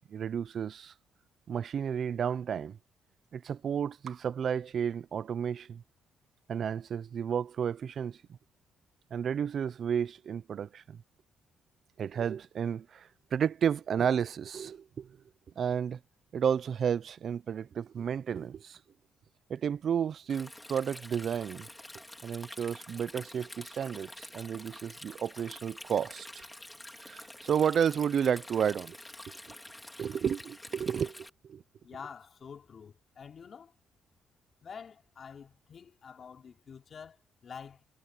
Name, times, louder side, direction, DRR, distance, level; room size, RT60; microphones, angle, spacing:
voice 1, 0.1-0.9 1.5-2.8 3.3-5.8 6.5-8.2 9.1-11.0 12.0-15.2 15.6-16.0 16.3-18.8 19.5-21.7 22.2-26.4 27.0-29.0 30.0-31.6, right 8 dB, 55° right, 0.6 m, -32 dB
Stream, 20.3-31.3, left 1 dB, 10° left, 4.6 m, -48 dB
voice 2, 31.8-33.7 34.6-37.8, left 6 dB, 50° left, 3.6 m, -48 dB
cardioid pair, 90°, 0 cm